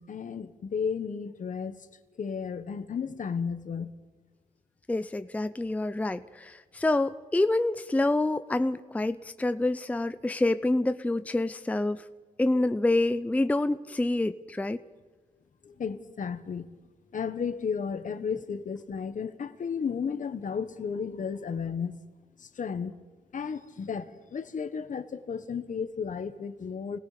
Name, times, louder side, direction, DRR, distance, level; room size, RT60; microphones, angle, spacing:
voice 1, 0.0-1.8 2.2-3.9 12.5-12.8 15.6-16.7 17.1-22.0 22.4-23.0 23.3-27.0, left 6 dB, 60° left, 1.4 m, -33 dB
voice 2, 4.9-12.0 12.4-14.8, left 2 dB, 10° left, 0.5 m, -27 dB
29.5 x 19.5 x 5.2 m
wide cardioid pair, 140°, 15 cm